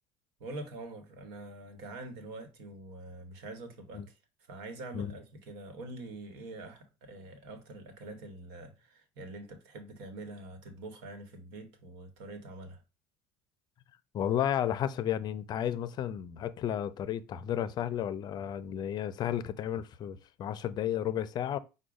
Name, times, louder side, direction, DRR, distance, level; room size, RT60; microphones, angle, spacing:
voice 1, 0.4-12.8, right 2 dB, 85° right, 1.1 m, -45 dB
voice 2, 14.1-21.6, left 10 dB, 45° left, 0.5 m, -32 dB
5.0 x 2.2 x 4.8 m
cardioid pair, 120°, 10 cm